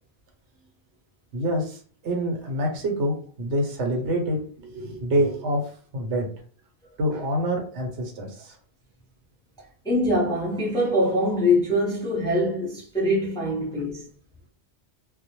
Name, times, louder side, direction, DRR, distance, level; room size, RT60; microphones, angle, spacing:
voice 1, 1.3-5.6 5.9-6.3 7.0-8.6, right 1 dB, 80° right, 0.9 m, -26 dB
voice 2, 9.8-14.1, left 1 dB, 5° left, 0.5 m, -23 dB
2.2 x 2.0 x 2.8 m
omnidirectional pair, 1.1 m